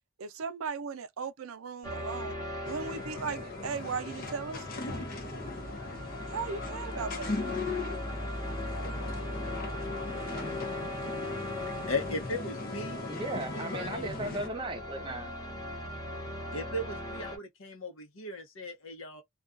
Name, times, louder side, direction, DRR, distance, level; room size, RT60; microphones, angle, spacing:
voice 1, 0.2-2.4 2.7-4.7 6.3-7.4, right 5 dB, 90° right, 0.5 m, -37 dB
sound 1, 1.8-17.4, left 1 dB, 20° left, 0.9 m, -39 dB
sound 2, 2.6-14.5, left 3 dB, 45° left, 0.7 m, -39 dB
voice 2, 11.9-13.0 13.5-14.1 16.5-19.2, left 2 dB, 70° left, 0.8 m, -37 dB
voice 3, 13.1-15.3, right 2 dB, 25° right, 0.6 m, -36 dB
2.4 x 2.2 x 2.5 m
head